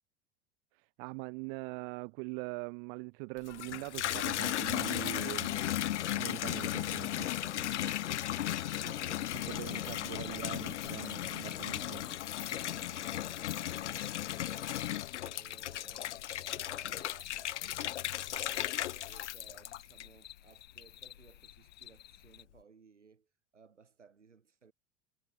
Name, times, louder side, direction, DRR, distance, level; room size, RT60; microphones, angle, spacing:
voice 1, 1.0-5.6 6.1-7.9 9.5-12.0, right 40 dB or more, 50° right, 0.5 m, -42 dB
Water tap faucet / Bathtub (filling or washing), 3.4-20.3 20.8-21.4, left 12 dB, 80° left, 0.7 m, -36 dB
sound 1, 7.6-22.4, left 13 dB, 30° left, 0.7 m, -54 dB
voice 2, 8.7-11.4 11.7-24.7, right 5 dB, 90° right, 6.2 m, -60 dB
hypercardioid pair, 85°, 35 cm